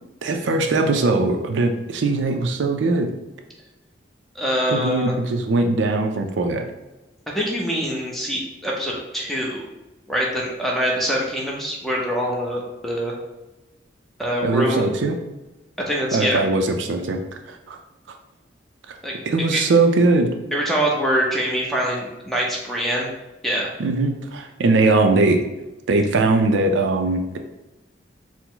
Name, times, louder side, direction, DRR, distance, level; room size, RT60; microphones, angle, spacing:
voice 1, 0.2-3.1 4.7-6.6 14.4-15.2 16.1-17.2 17.5-17.8 19.3-20.3 23.8-25.4 25.9-27.4, right 3 dB, 75° right, 4 dB, 0.4 m, -20 dB
voice 2, 4.4-5.1 7.3-9.6 10.1-13.1 14.2-14.8 15.9-16.4 19.0-19.6 20.5-23.1 23.4-23.7, equal, ahead, -3 dB, 0.6 m, -24 dB
4.5 x 2.0 x 3.8 m, 1.1 s
head